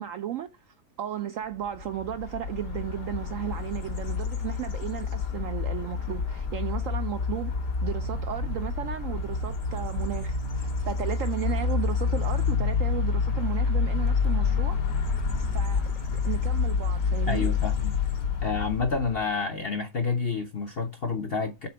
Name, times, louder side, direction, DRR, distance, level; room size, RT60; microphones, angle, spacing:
voice 1, 0.0-14.8 15.4-17.5, right 11 dB, 70° right, 0.7 m, -35 dB
sound 1, 1.7-19.3, left 5 dB, 90° left, 2.1 m, -28 dB
voice 2, 17.3-18.0 18.4-21.7, left 4 dB, 55° left, 0.7 m, -29 dB
6.7 x 4.2 x 5.6 m
omnidirectional pair, 1.8 m